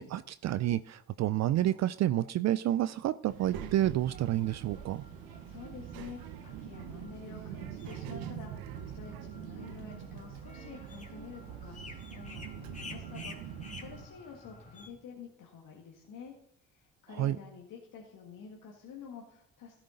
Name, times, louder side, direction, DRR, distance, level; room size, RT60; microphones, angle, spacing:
voice 1, 0.0-5.0 17.2-17.4, right 13 dB, 50° right, 17 dB, 0.4 m, -29 dB
Child speech kid speaking, 3.3-14.0, right 9 dB, 75° right, 1.1 m, -44 dB
sound 1, 4.1-14.9, left 3 dB, 20° left, 2.7 m, -52 dB
voice 2, 5.5-16.3 16.7-19.8, left 5 dB, 65° left, 0 dB, 2.0 m, -49 dB
16.0 x 10.0 x 3.9 m, 0.73 s
hypercardioid pair, 45°, 36 cm